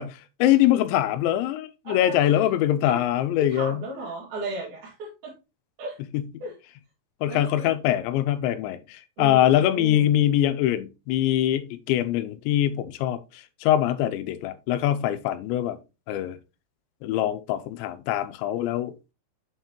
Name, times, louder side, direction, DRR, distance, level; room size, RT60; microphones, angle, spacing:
voice 1, 0.0-3.8 6.1-6.2 7.2-15.8 16.1-16.4 17.0-18.9, left 12 dB, 85° left, 3.0 m, -23 dB
voice 2, 1.8-2.4 2.8-3.0 3.4-5.3 5.8-6.0 6.4-6.6 7.3-7.8 9.2-10.1, right 2 dB, 50° right, 3.2 m, -36 dB
7.7 x 5.7 x 2.9 m
omnidirectional pair, 5.1 m